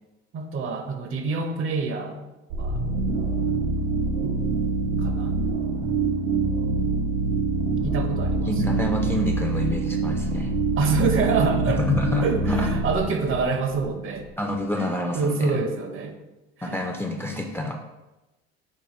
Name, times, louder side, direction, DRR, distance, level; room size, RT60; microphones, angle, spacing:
voice 1, 0.3-2.3 2.6-2.9 5.0-5.4 7.8-8.8 10.8-11.8 12.2-14.3 14.8-16.2 16.6-16.8, right 4 dB, 45° right, 6 dB, 0.7 m, -27 dB
sound 1, 2.5-14.3, right 3 dB, 75° right, 0.7 m, -25 dB
voice 2, 8.5-10.5 11.9-12.8 14.4-15.6 16.6-17.7, left 2 dB, 10° left, 2 dB, 0.4 m, -27 dB
4.8 x 2.2 x 4.1 m, 1.0 s
hypercardioid pair, 70°, 31 cm